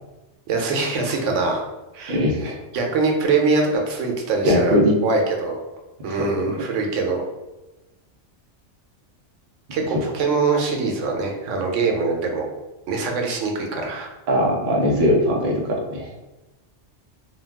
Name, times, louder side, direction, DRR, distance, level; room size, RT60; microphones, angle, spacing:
voice 1, 0.5-1.6 1.9-2.2 2.7-5.6 6.0-7.2 9.7-12.5 12.9-14.2, right 3 dB, 90° right, 2 dB, 0.9 m, -23 dB
voice 2, 2.1-2.6 4.4-4.9 6.1-6.2 6.5-6.6 14.3-16.1, equal, 55° right, 0 dB, 0.6 m, -20 dB
2.3 x 2.2 x 3.3 m, 1.0 s
omnidirectional pair, 1.2 m